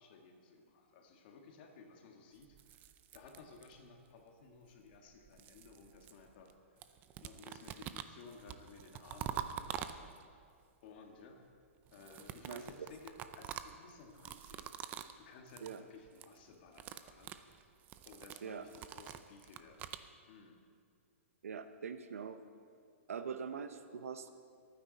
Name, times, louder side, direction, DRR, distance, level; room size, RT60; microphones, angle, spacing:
voice 1, 0.0-10.5 10.8-11.4 11.9-17.3 17.6-17.7 18.0-19.9 20.3-20.6, left 4 dB, 45° left, 3 dB, 2.0 m, -57 dB
sound 1, 2.4-4.0 4.9-6.5 6.8-10.4 11.9-15.2 15.5-15.8 16.1-16.4 16.7-20.1, right 10 dB, 25° right, 0.5 m, -46 dB
voice 2, 21.4-22.4 23.1-24.3, right 6 dB, 90° right, 9 dB, 0.9 m, -43 dB
23.0 x 9.7 x 4.2 m, 2.2 s
hypercardioid pair, 150°, 7 cm